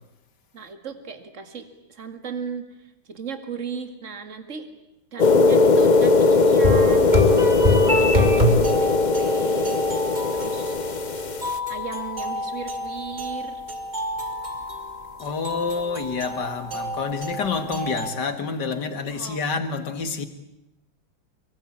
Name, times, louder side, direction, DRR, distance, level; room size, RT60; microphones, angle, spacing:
voice 1, 0.5-4.7 5.1-7.2 8.0-9.9 10.3-10.7 11.7-13.6 15.6-16.3 19.1-19.5, right 6 dB, 35° right, 2.4 m, -36 dB
sound 1, 5.2-11.6, left 3 dB, 40° left, 0.6 m, -19 dB
sound 2, 6.6-18.1, left 1 dB, 20° right, 2.9 m, -27 dB
voice 2, 15.2-20.3, left 4 dB, 55° left, 2.3 m, -28 dB
25.0 x 23.5 x 8.7 m
omnidirectional pair, 2.3 m